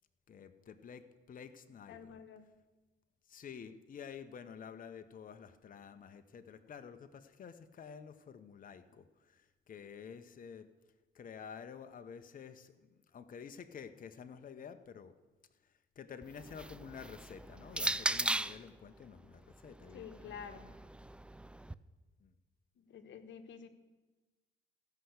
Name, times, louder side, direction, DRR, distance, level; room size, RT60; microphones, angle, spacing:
voice 1, 0.3-2.2 3.2-10.7 11.1-15.2 15.6-20.4 22.2-22.3, left 7 dB, 45° left, 9 dB, 0.8 m, -50 dB
voice 2, 1.9-2.4 19.9-20.7 22.8-23.7, left 7 dB, 70° left, 8 dB, 1.2 m, -49 dB
sound 1, 16.2-18.7 19.6-21.7, right 1 dB, 5° right, 0.3 m, -38 dB
15.0 x 5.7 x 8.0 m, 1.2 s
cardioid pair, 90°, 20 cm